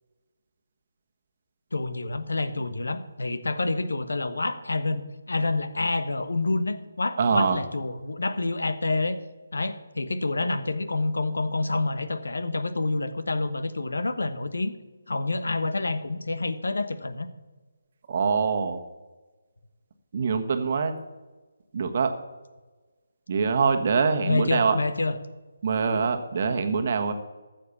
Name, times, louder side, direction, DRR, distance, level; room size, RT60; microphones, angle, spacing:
voice 1, 1.7-9.2 9.5-14.7 15.1-17.3 24.3-25.2, left 2 dB, 70° left, 12 dB, 1.2 m, -28 dB
voice 2, 7.2-7.6 18.1-18.8 20.1-20.9 21.7-22.1 23.3-24.8 25.6-27.1, right 5 dB, 40° right, 7 dB, 1.4 m, -24 dB
14.5 x 7.7 x 7.0 m, 1.2 s
figure-of-eight pair, 150°, 0 cm